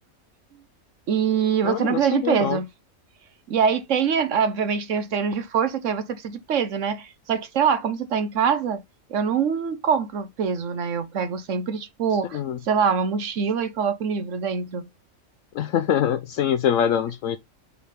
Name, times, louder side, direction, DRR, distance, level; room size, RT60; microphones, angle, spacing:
voice 1, 1.1-2.6 3.5-8.8 9.1-14.9, right 7 dB, 65° right, 1.2 m, -24 dB
voice 2, 1.6-2.6 12.3-12.6 15.5-17.4, left 9 dB, 70° left, 0.9 m, -24 dB
7.0 x 4.8 x 3.4 m
omnidirectional pair, 1.4 m